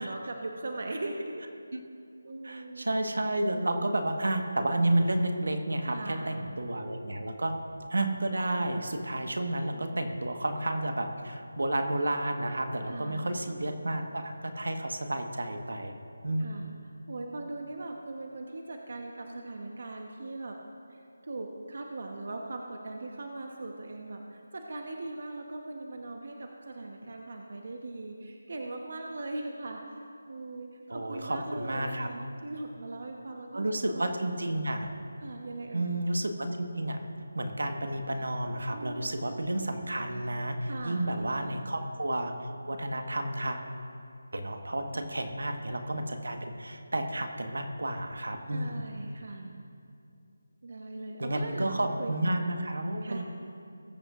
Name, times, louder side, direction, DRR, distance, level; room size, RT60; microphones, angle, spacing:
voice 1, 0.0-1.4 2.2-2.9 5.8-6.4 9.7-10.1 12.9-13.4 16.4-16.7 17.1-20.6 20.9-29.8 30.3-34.6 35.2-35.9 38.7-39.2 40.7-41.7 44.9-45.4 48.5-49.7 50.6-52.4 53.0-53.2, right 2 dB, 55° right, 2 dB, 1.0 m, -40 dB
voice 2, 2.4-7.6 7.9-16.0 16.2-16.6 30.9-32.1 33.5-34.9 35.7-37.0 37.3-43.6 44.3-48.8 51.2-53.2, right 1 dB, 80° right, 5 dB, 1.3 m, -31 dB
20.5 x 8.2 x 2.5 m, 2.5 s
figure-of-eight pair, 165°, 0 cm